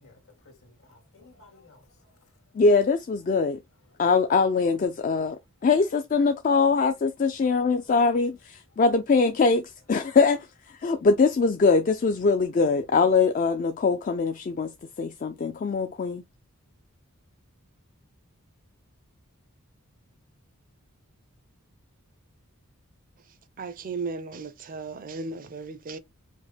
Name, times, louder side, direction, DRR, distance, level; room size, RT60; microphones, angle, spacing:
voice 1, 0.0-2.3 3.9-4.0 7.6-7.7, left 3 dB, 65° left, 2.0 m, -56 dB
voice 2, 2.6-3.6 4.0-5.4 5.6-10.5 10.8-14.7 15.0-16.2, left 4 dB, 35° left, 0.3 m, -22 dB
voice 3, 23.6-26.0, right 4 dB, 35° right, 0.4 m, -35 dB
5.1 x 2.1 x 3.2 m
head